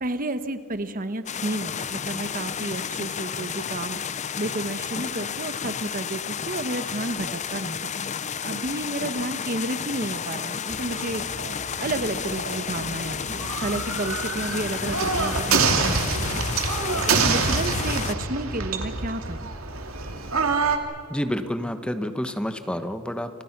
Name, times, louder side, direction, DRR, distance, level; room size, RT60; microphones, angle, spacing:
voice 1, 0.0-7.9 8.4-11.2 11.8-16.4 16.8-19.5, right 2 dB, 40° right, 11 dB, 1.1 m, -31 dB
sound 1, 1.3-18.1, left 7 dB, 35° left, 0.6 m, -32 dB
sound 2, 10.7-20.8, right 4 dB, 70° right, 2.6 m, -27 dB
voice 2, 21.1-23.4, equal, 5° left, 8 dB, 1.2 m, -29 dB
30.0 x 26.5 x 6.0 m, 2.3 s
head